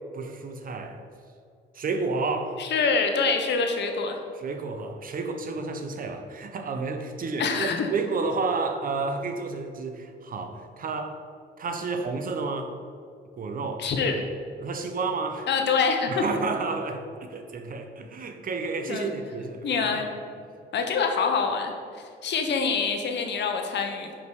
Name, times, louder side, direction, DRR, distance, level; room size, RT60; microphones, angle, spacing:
voice 1, 0.1-1.0 1.7-2.6 4.4-11.2 11.6-12.7 13.3-13.9 14.6-15.5 16.1-20.0, right 4 dB, 45° right, 6 dB, 0.8 m, -31 dB
voice 2, 2.6-4.2 7.4-7.9 13.8-14.2 15.5-16.2 18.9-19.1 19.6-20.1 20.7-24.1, left 5 dB, 60° left, 4 dB, 0.9 m, -25 dB
5.3 x 4.9 x 4.7 m, 2.3 s
cardioid pair, 90°, 20 cm